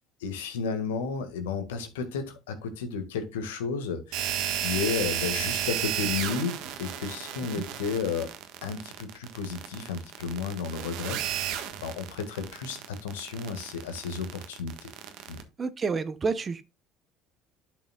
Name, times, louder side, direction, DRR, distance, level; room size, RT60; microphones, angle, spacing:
voice 1, 0.2-4.3 4.6-8.3 8.6-11.2 11.8-14.9 15.3-15.4, left 5 dB, 80° left, 1.8 m, -32 dB
sound 1, 4.1-15.4, right 10 dB, 65° right, 1.5 m, -33 dB
voice 2, 15.6-16.6, right 4 dB, 35° right, 1.0 m, -29 dB
11.5 x 6.2 x 2.4 m
hypercardioid pair, 65°, 0 cm